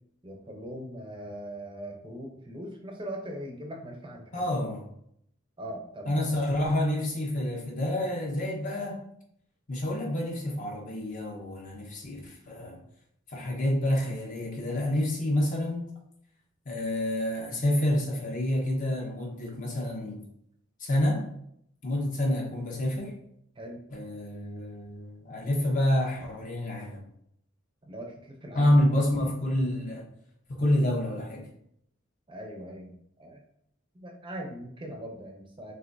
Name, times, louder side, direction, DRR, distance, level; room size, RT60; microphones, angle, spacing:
voice 1, 0.2-4.5 5.6-6.2 23.6-23.8 27.8-28.7 32.3-33.4 33.9-35.7, right 1 dB, 25° right, 1 dB, 0.7 m, -40 dB
voice 2, 4.3-4.8 6.1-9.0 9.7-12.8 13.3-15.8 16.6-20.2 20.8-21.3 21.8-23.1 23.9-27.0 28.5-30.0 30.5-31.5, left 1 dB, 40° left, -1 dB, 1.0 m, -28 dB
6.0 x 2.7 x 2.7 m, 0.71 s
head